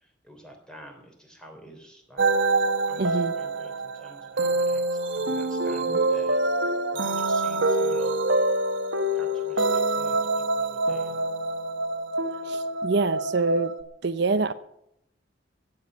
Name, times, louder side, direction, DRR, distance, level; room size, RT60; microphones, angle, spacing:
voice 1, 0.0-2.2 2.9-6.4 6.9-8.2 9.1-11.2, equal, 5° left, 3 dB, 3.5 m, -49 dB
sound 1, 2.2-13.8, right 2 dB, 80° right, 1.3 m, -26 dB
voice 2, 3.0-3.3 5.9-6.0 12.4-13.7 14.0-14.5, right 3 dB, 65° right, 11 dB, 0.7 m, -25 dB
15.5 x 8.6 x 7.9 m, 0.77 s
head